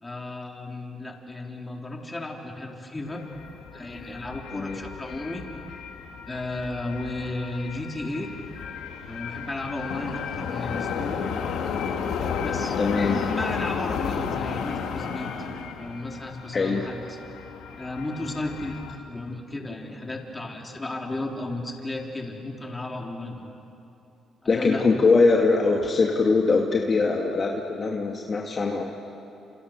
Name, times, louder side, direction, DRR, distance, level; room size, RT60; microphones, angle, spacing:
voice 1, 0.0-3.2 3.7-5.4 6.3-8.3 9.0-11.3 12.2-15.5 15.8-17.2 17.8-23.5 24.4-24.9, left 2 dB, 20° left, 0 dB, 3.9 m, -34 dB
sound 1, 3.1-19.0, left 6 dB, 85° left, 2.1 m, -33 dB
voice 2, 12.8-13.2 16.5-16.8 24.5-28.9, left 4 dB, 40° left, 0 dB, 2.2 m, -22 dB
30.0 x 28.5 x 6.7 m, 2.9 s
cardioid pair, 85°, 0 cm